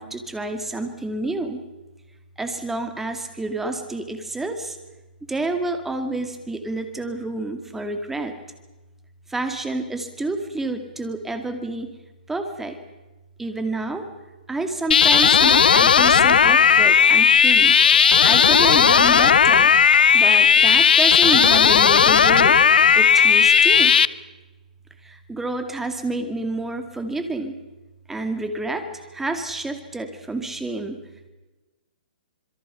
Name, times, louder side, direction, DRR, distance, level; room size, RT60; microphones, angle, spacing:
voice 1, 0.0-1.6 2.4-4.8 5.3-8.3 9.3-11.9 12.3-12.8 13.4-14.1 14.5-17.7 18.2-19.7 20.1-22.6 23.0-24.0 25.0-27.6 28.1-31.0, right 2 dB, 5° right, 7 dB, 2.2 m, -29 dB
sound 1, 14.9-24.1, left 7 dB, 75° left, 0.8 m, -15 dB
26.5 x 22.5 x 5.7 m, 1.1 s
hypercardioid pair, 145°, 5 cm